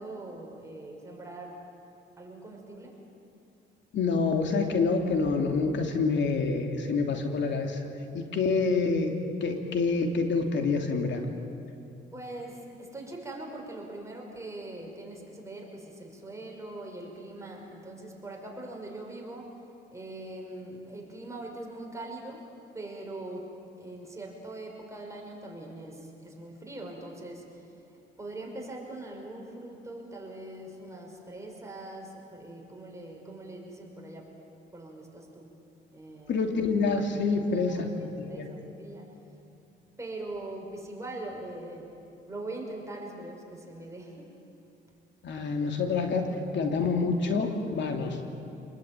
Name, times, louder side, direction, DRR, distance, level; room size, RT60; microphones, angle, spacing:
voice 1, 0.0-1.7 2.2-3.0 12.1-19.6 19.9-27.8 28.2-34.3 34.7-35.5 35.9-36.4 36.9-39.1 40.0-42.0 42.2-44.3, right 2 dB, 15° right, 0 dB, 5.7 m, -42 dB
voice 2, 3.9-7.8 8.1-9.1 9.4-11.2 36.3-37.9 38.2-38.5 45.2-46.3 46.5-48.3, left 4 dB, 65° left, 4 dB, 2.9 m, -27 dB
27.5 x 20.5 x 9.3 m, 2.8 s
cardioid pair, 90°, 20 cm